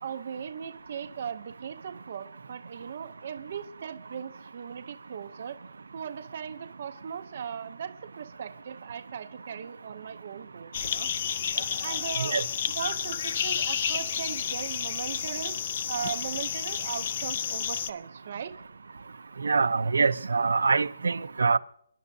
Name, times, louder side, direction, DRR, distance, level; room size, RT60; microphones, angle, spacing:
voice 1, 0.0-5.6 5.9-11.1 11.8-12.4 12.7-15.5 15.9-18.6, right 7 dB, 30° right, 0.6 m, -38 dB
sound 1, 10.7-17.9, left 8 dB, 25° left, 0.4 m, -31 dB
voice 2, 19.4-21.6, right 4 dB, 85° right, 0.7 m, -24 dB
28.5 x 11.0 x 2.7 m
hypercardioid pair, 180°, 0 cm